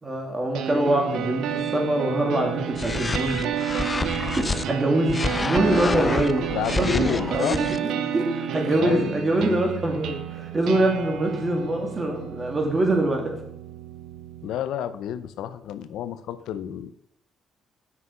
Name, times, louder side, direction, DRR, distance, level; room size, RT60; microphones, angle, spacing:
voice 1, 0.0-3.5 3.8-3.9 4.4-6.5 6.8-13.4, right 1 dB, 25° right, 2 dB, 2.6 m, -24 dB
sound 1, 0.5-14.5, right 9 dB, 85° right, 0.7 m, -31 dB
sound 2, 2.7-4.6 5.1-7.8, left 3 dB, 25° left, 0.5 m, -28 dB
voice 2, 6.5-7.6 8.7-9.1 14.4-16.9, left 10 dB, 85° left, 13 dB, 0.5 m, -30 dB
7.6 x 6.1 x 5.7 m, 0.78 s
cardioid pair, 90°, 0 cm